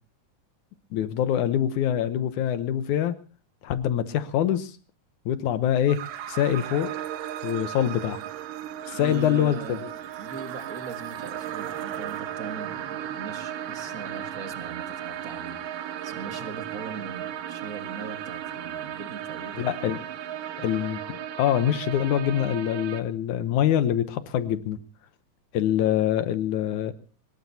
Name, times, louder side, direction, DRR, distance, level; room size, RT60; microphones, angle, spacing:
voice 1, 0.9-3.2 3.6-4.8 5.3-6.0 6.3-6.9 7.4-8.2 8.9-9.8 19.6-20.0 20.6-24.8 25.5-26.9, left 10 dB, 70° left, 12 dB, 2.1 m, -25 dB
sound 1, 5.9-23.0, right 11 dB, 80° right, 2.7 m, -35 dB
voice 2, 8.9-9.8 10.2-19.7, right 5 dB, 45° right, 7 dB, 1.1 m, -40 dB
23.5 x 20.0 x 2.7 m, 0.34 s
omnidirectional pair, 3.9 m